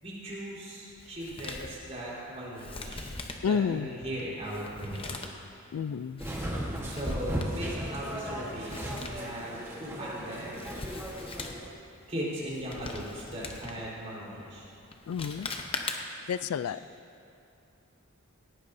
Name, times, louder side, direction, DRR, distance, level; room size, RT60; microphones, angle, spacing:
voice 1, 0.0-3.1 3.4-5.2 6.8-10.6 12.1-14.6 16.7-16.8, equal, 30° right, -7 dB, 3.9 m, -38 dB
Male speech man speaking, 1.0-16.3, left 3 dB, 25° left, 0.7 m, -43 dB
voice 2, 3.4-3.9 5.7-6.2 15.1-15.5 16.3-16.8, left 6 dB, 80° left, 15 dB, 0.3 m, -30 dB
sound 1, 6.2-11.7, equal, 10° right, 1.3 m, -36 dB
18.0 x 16.5 x 2.7 m, 2.7 s
head